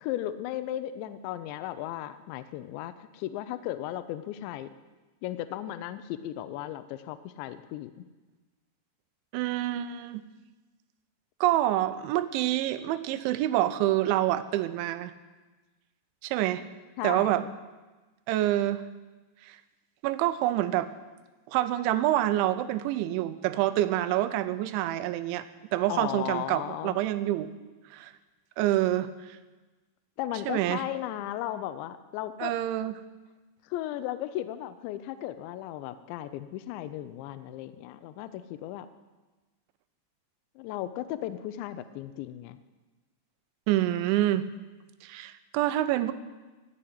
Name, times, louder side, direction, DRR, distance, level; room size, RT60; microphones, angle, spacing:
voice 1, 0.0-4.7 5.2-7.9 17.0-17.5 25.9-27.0 30.2-32.5 33.7-38.9 40.6-42.6, left 13 dB, 85° left, 11 dB, 2.9 m, -35 dB
voice 2, 9.3-10.2 11.4-15.1 16.2-16.6 17.0-17.4 18.3-18.8 19.4-19.6 20.0-20.9 21.5-25.5 25.7-27.5 27.9-28.1 28.6-29.4 30.5-30.8 32.4-33.0 43.7-44.5 45.0-46.1, right 14 dB, 90° right, 12 dB, 3.1 m, -27 dB
16.5 x 6.3 x 10.0 m, 1.2 s
omnidirectional pair, 5.2 m